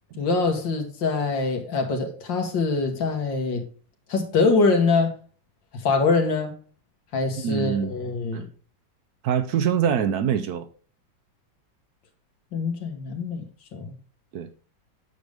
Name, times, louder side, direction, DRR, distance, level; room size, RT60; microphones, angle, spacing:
voice 1, 0.2-3.6 4.1-5.1 5.7-6.5 7.1-8.5 12.5-13.4 13.7-14.0, left 4 dB, 90° left, 2.3 m, -24 dB
voice 2, 7.4-7.9 8.3-8.4 9.2-10.7 14.3-14.5, right 8 dB, 70° right, 1.0 m, -24 dB
9.1 x 6.6 x 3.5 m
omnidirectional pair, 2.0 m